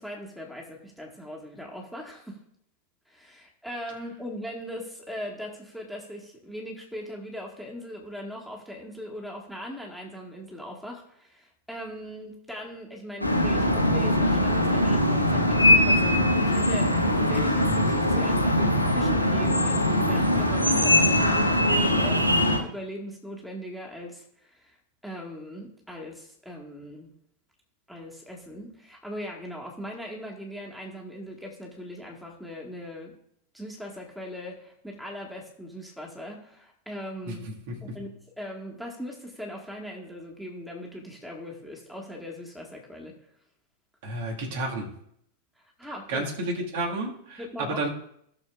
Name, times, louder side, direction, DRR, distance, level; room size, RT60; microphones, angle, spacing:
voice 1, 0.0-2.4 3.1-24.8 25.0-27.1 27.9-33.1 33.5-37.4 37.9-38.1 38.4-43.1 45.6-46.3 47.4-47.8, equal, ahead, 0 dB, 1.9 m, -39 dB
sound 1, 13.2-22.6, left 1 dB, 90° left, 1.2 m, -22 dB
voice 2, 37.7-38.0 44.0-44.9 46.1-47.9, right 2 dB, 50° right, 0 dB, 1.9 m, -31 dB
17.0 x 6.5 x 2.5 m, 0.72 s
figure-of-eight pair, 90°, 0 cm